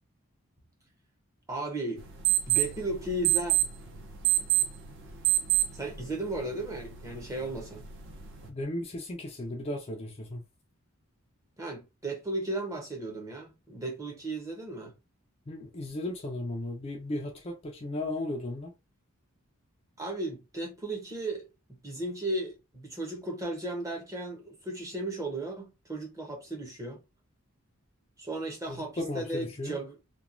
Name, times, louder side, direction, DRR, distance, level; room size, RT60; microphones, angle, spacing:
voice 1, 1.5-2.1 2.5-3.5 5.7-7.8 11.6-14.9 20.0-27.0 28.2-30.0, right 2 dB, 15° right, 0.7 m, -35 dB
sound 1, 2.0-8.5, right 14 dB, 55° right, 0.7 m, -30 dB
voice 2, 8.5-10.4 15.5-18.7 28.7-29.8, left 1 dB, 30° left, 0.4 m, -35 dB
2.9 x 2.2 x 2.5 m
head